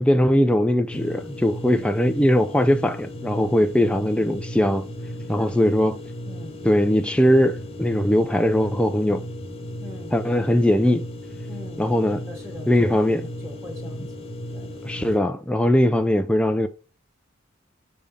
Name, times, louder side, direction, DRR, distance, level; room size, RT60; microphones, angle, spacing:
voice 1, 0.0-4.9 5.3-6.0 6.6-9.3 10.1-11.0 11.8-12.2 12.7-13.3 14.8-16.7, left 1 dB, 5° left, 0.4 m, -20 dB
sound 1, 0.9-15.2, equal, 30° left, 1.1 m, -35 dB
voice 2, 1.7-2.0 5.3-5.6 6.3-6.6 9.8-10.2 11.5-11.9 12.3-12.9 13.4-14.2 14.5-14.7, left 2 dB, 10° right, 2.1 m, -42 dB
7.1 x 3.4 x 5.1 m
head